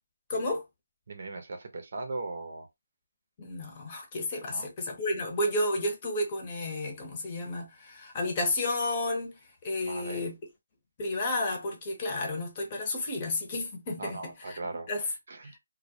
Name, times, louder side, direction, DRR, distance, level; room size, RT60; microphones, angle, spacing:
voice 1, 0.3-0.6 3.4-9.3 9.6-10.3 11.0-14.2 14.5-14.6 14.9-15.0 15.4-15.6, left 2 dB, 30° left, 0.8 m, -31 dB
voice 2, 1.1-2.7 4.5-4.7 9.8-10.2 14.0-15.5, right 3 dB, 55° right, 0.7 m, -39 dB
2.3 x 2.1 x 2.7 m
figure-of-eight pair, 160°, 0 cm